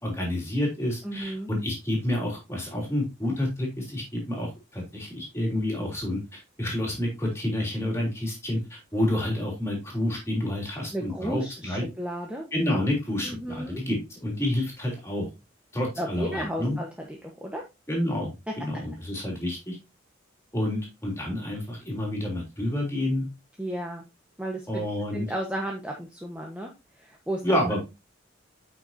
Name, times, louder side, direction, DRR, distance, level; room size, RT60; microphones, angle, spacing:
voice 1, 0.0-11.8 12.5-15.3 15.7-16.8 17.9-19.8 20.5-23.2 24.7-25.3 27.4-27.8, left 1 dB, 15° left, -1 dB, 3.3 m, -29 dB
voice 2, 1.0-1.5 10.9-12.5 13.2-13.8 16.0-17.6 23.6-24.0 24.4-24.8 25.1-26.7 27.0-27.4, right 1 dB, 5° right, 0 dB, 1.1 m, -33 dB
9.1 x 6.0 x 2.7 m, 0.24 s
head